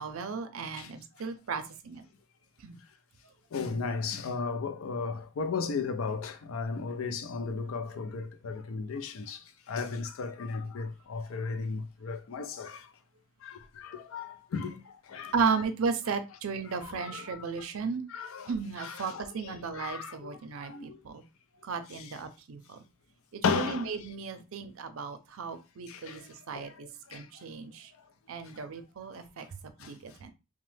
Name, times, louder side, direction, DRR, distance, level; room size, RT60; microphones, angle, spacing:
voice 1, 0.0-2.0 2.6-2.8 15.3-18.0 18.5-21.2 21.6-22.8 23.3-26.2 26.5-27.9 28.3-29.5 29.8-30.3, right 5 dB, 85° right, 0.5 m, -35 dB
voice 2, 3.5-12.9 13.4-15.3 16.7-17.7 18.1-21.0 21.9-22.2 23.4-23.9 25.9-27.3 28.5-28.6 29.8-29.9, left 5 dB, 80° left, 0.4 m, -35 dB
3.0 x 2.0 x 3.2 m
head